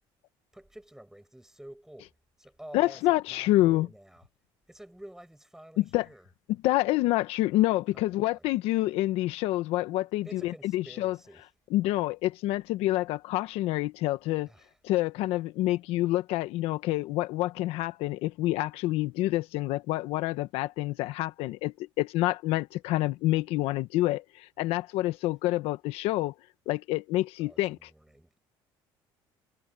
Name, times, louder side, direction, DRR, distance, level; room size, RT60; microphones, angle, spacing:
voice 1, 0.5-2.1 2.4-4.3 4.7-6.3 7.9-8.5 10.2-11.5 14.5-14.8 27.4-28.4, right 1 dB, 5° right, 7.5 m, -50 dB
voice 2, 2.7-3.9 5.8-6.1 6.6-11.1 11.7-14.5 14.8-26.3 26.7-27.9, left 17 dB, 80° left, 1.2 m, -27 dB
cardioid pair, 100°, 10 cm